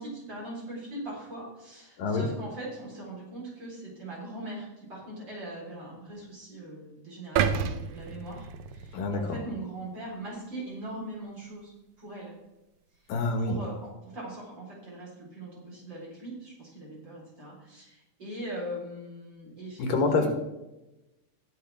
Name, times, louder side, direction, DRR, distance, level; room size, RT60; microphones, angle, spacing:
voice 1, 0.0-11.7 12.0-12.3 13.0-13.1 13.4-20.3, right 1 dB, 30° right, -5 dB, 4.4 m, -41 dB
sound 1, 7.4-9.5 10.0-10.1, right 7 dB, 85° right, 2.3 m, -30 dB
voice 2, 8.9-9.4 13.1-13.6 19.8-20.3, left 3 dB, 75° left, 4 dB, 3.0 m, -26 dB
19.5 x 6.9 x 3.4 m, 0.97 s
omnidirectional pair, 4.0 m